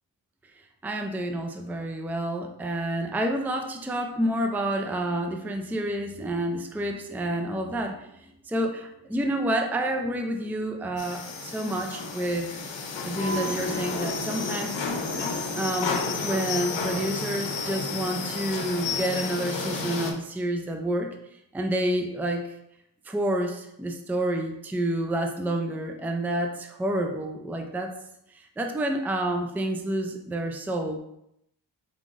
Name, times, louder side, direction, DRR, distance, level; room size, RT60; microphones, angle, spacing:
voice 1, 0.8-12.5 13.0-14.9 15.5-16.0 16.2-21.1 21.5-22.5 23.1-27.9 28.3-31.0, right 1 dB, 5° right, 4 dB, 0.5 m, -29 dB
sound 1, 11.0-20.1, left 4 dB, 70° left, 0.8 m, -31 dB
4.7 x 3.6 x 2.6 m, 0.79 s
cardioid pair, 55°, 47 cm